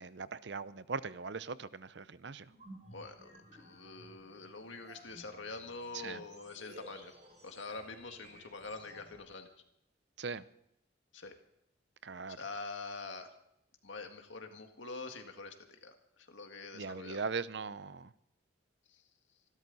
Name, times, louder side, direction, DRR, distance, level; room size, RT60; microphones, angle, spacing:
voice 1, 0.0-2.5 5.9-6.2 10.2-10.4 12.0-12.4 16.7-18.1, right 4 dB, 65° right, 16 dB, 0.6 m, -40 dB
sound 1, 2.4-9.1, equal, 35° right, 4.1 m, -56 dB
voice 2, 2.9-7.1 7.4-9.5 11.1-11.4 12.3-13.3 13.8-17.2 18.9-19.0, left 3 dB, 75° left, 5 dB, 1.9 m, -45 dB
25.5 x 12.5 x 4.1 m, 0.79 s
head